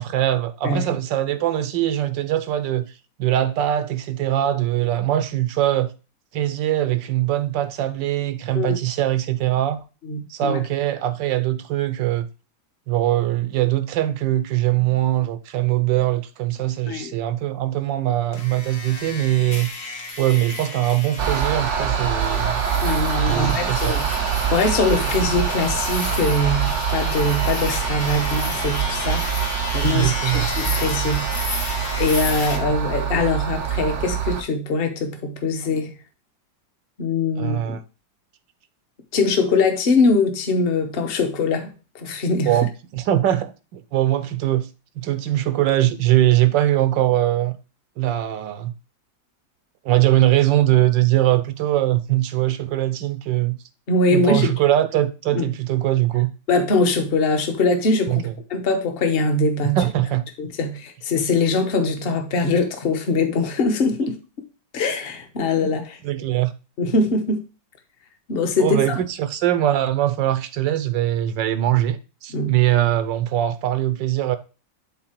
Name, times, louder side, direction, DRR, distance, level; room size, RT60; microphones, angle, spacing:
voice 1, 0.0-2.8 3.2-5.9 6.3-9.8 10.3-12.3 12.9-19.7 20.2-22.6 23.3-24.0 29.9-30.5 37.4-37.8 42.5-44.7 45.0-47.5 48.0-48.7 49.8-53.6 54.1-56.3 58.1-58.3 59.7-60.2 64.0-64.1 65.6-65.7 66.0-66.5 68.6-74.4, right 13 dB, 80° right, 1.3 m, -21 dB
voice 2, 10.0-10.6 16.9-17.1 22.8-24.1 24.5-29.3 29.7-31.3 32.0-35.9 37.0-37.8 39.1-42.6 53.9-54.5 55.3-55.5 56.5-59.8 60.4-64.1 64.7-66.0 66.8-67.4 68.3-68.8 72.3-72.6, left 3 dB, 40° left, 1.0 m, -22 dB
sound 1, 18.3-32.6, left 3 dB, 70° left, 2.1 m, -32 dB
sound 2, 21.2-34.4, right 7 dB, 60° right, 0.7 m, -24 dB
7.6 x 4.1 x 4.4 m
omnidirectional pair, 2.1 m